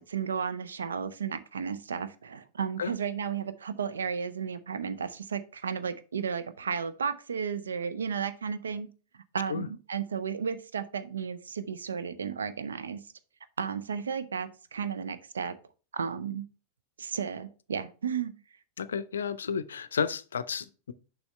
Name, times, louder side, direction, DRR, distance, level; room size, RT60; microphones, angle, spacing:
voice 1, 0.0-8.9 9.1-13.0 13.6-15.6 15.9-16.5 17.0-18.3, right 6 dB, 70° right, 0.6 m, -33 dB
voice 2, 18.8-20.9, left 6 dB, 70° left, 0.5 m, -32 dB
7.0 x 5.6 x 3.2 m
figure-of-eight pair, 90°, 0 cm